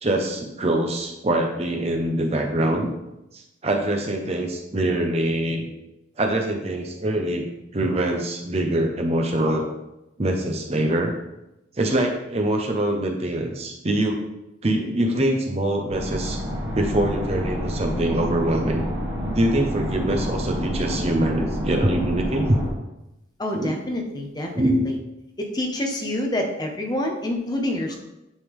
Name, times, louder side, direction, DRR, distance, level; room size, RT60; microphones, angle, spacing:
voice 1, 0.0-2.9 3.6-5.7 6.2-7.4 7.7-9.6 10.2-11.1 11.8-14.2 14.6-16.4 16.7-18.8 19.3-22.6 23.5-23.7 24.6-24.9, right 1 dB, 35° right, 2 dB, 0.7 m, -23 dB
sound 1, 15.9-22.7, equal, 80° right, 2.1 m, -28 dB
voice 2, 23.4-25.0 25.4-28.0, left 1 dB, 20° left, 1 dB, 0.8 m, -27 dB
9.7 x 3.3 x 3.7 m, 0.93 s
head